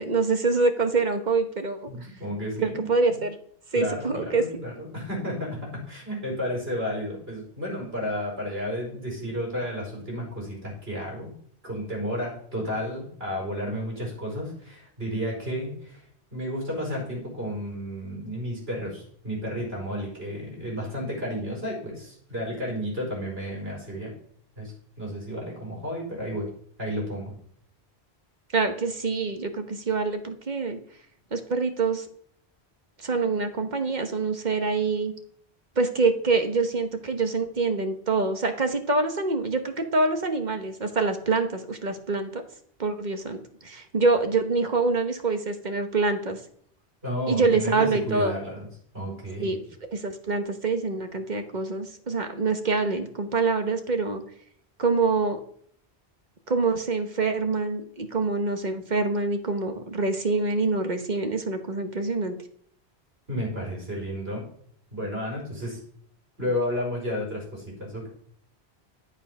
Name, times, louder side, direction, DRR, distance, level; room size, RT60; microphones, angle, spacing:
voice 1, 0.0-1.9 2.6-3.4 3.7-4.4 28.5-30.8 31.3-32.0 33.0-35.1 35.8-42.4 42.8-46.4 47.3-48.4 49.4-49.6 49.9-54.2 54.8-55.4 56.5-62.3, right 3 dB, 45° right, 7 dB, 1.3 m, -25 dB
voice 2, 1.9-2.9 3.7-5.6 5.9-11.4 11.6-16.1 16.3-24.1 24.6-26.5 26.8-27.4 47.0-48.7 48.9-49.6 63.3-64.4 64.9-65.8 66.4-68.1, equal, 70° right, -2 dB, 5.0 m, -32 dB
11.5 x 7.1 x 5.3 m, 0.62 s
omnidirectional pair, 1.1 m